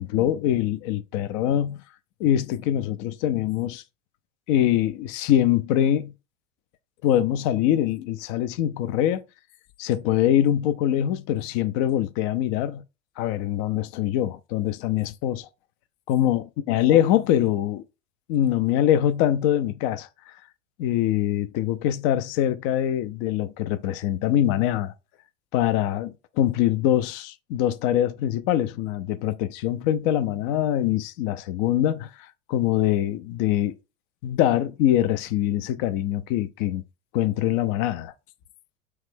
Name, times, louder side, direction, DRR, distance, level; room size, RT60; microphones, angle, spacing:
voice 1, 0.0-1.8 2.2-3.8 4.5-6.1 7.0-9.2 9.8-12.8 13.2-15.5 16.1-17.8 18.3-20.1 20.8-24.9 25.5-32.1 32.5-33.7 34.2-36.8 37.1-38.1, left 11 dB, 40° left, 0.4 m, -23 dB
3.1 x 2.2 x 3.3 m
hypercardioid pair, 85°, 39 cm